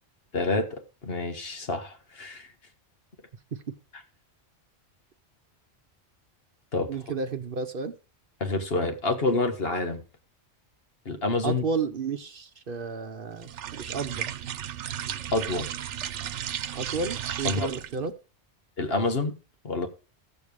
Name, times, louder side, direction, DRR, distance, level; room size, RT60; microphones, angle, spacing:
voice 1, 0.3-2.5 6.7-6.9 8.4-10.0 11.0-11.6 15.3-15.8 17.4-17.7 18.8-19.3 19.6-19.9, left 3 dB, 60° left, 1.7 m, -28 dB
voice 2, 6.9-8.0 11.4-14.3 16.7-18.1, right 4 dB, 55° right, 1.0 m, -32 dB
sound 1, 13.4-18.0, right 10 dB, 90° right, 1.0 m, -34 dB
14.5 x 7.0 x 4.8 m
omnidirectional pair, 1.2 m